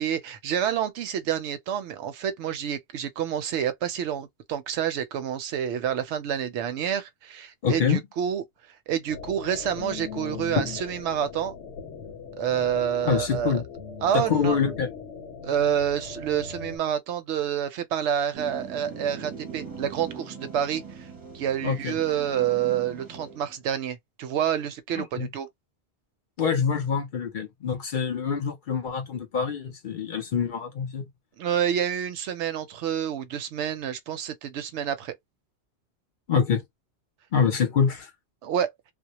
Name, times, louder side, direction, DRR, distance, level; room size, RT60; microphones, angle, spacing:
voice 1, 0.0-11.5 12.4-13.6 14.0-14.6 15.4-21.1 21.3-25.5 31.4-35.1 38.4-38.7, right 9 dB, 80° right, 0.9 m, -28 dB
voice 2, 7.6-8.0 10.6-10.7 13.0-13.6 14.1-14.9 21.6-22.0 25.0-25.3 26.4-31.1 36.3-36.6 37.3-38.1, left 6 dB, 55° left, 0.6 m, -25 dB
sound 1, 9.1-16.8, left 5 dB, 85° left, 0.9 m, -39 dB
sound 2, 18.3-23.6, right 6 dB, 20° right, 0.7 m, -41 dB
2.2 x 2.0 x 2.8 m
omnidirectional pair, 1.2 m